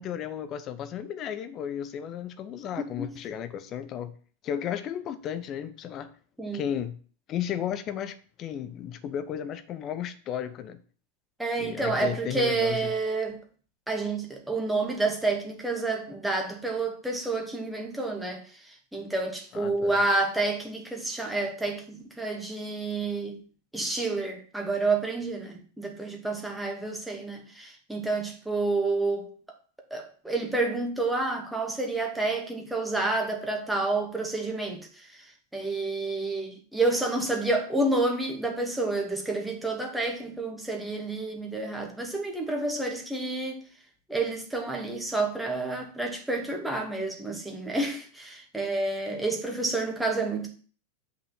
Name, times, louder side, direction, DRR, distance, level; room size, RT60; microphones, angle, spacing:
voice 1, 0.0-4.1 4.4-6.1 6.5-7.0 7.3-10.8 11.6-12.9 19.5-20.0, left 9 dB, 35° left, 0.9 m, -34 dB
voice 2, 11.4-13.4 13.9-23.4 23.7-29.3 29.9-43.6 44.1-50.5, right 3 dB, 5° right, 2.1 m, -29 dB
6.6 x 5.5 x 7.2 m
figure-of-eight pair, 90°, 0 cm